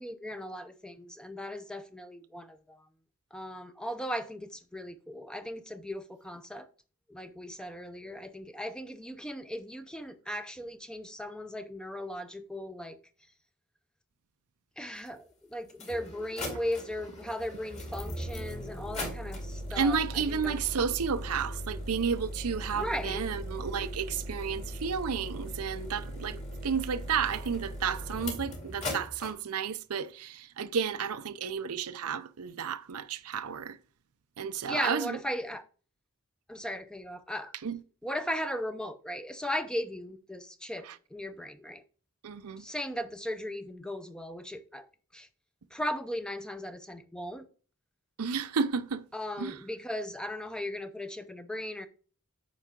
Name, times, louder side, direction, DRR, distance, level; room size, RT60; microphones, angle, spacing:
voice 1, 0.0-2.9 3.3-6.7 7.1-13.0 14.8-20.6 22.7-23.3 34.6-35.6 36.5-37.5 38.0-41.8 42.6-44.9 45.1-45.3 45.7-47.5 49.1-51.9, equal, 5° left, 0.6 m, -37 dB
sound 1, 15.1-15.2 15.7-29.3, equal, 30° left, 2.3 m, -39 dB
voice 2, 19.8-33.8 34.4-35.2 37.6-37.8 40.8-41.0 42.2-42.6 48.2-49.0 49.4-49.6, right 6 dB, 80° right, 0.6 m, -32 dB
9.1 x 5.5 x 3.7 m
head